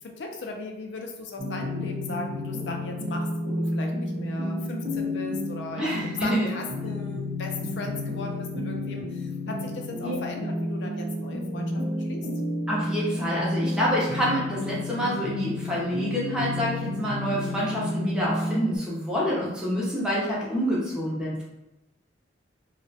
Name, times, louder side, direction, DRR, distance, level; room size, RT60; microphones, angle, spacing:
voice 1, 0.0-12.3, left 3 dB, 70° left, 2 dB, 0.4 m, -37 dB
sound 1, 1.4-18.8, left 1 dB, 50° right, 0.5 m, -31 dB
voice 2, 5.8-6.5 10.0-10.2 12.7-21.4, equal, 5° right, -6 dB, 0.6 m, -27 dB
2.3 x 2.1 x 2.6 m, 0.95 s
head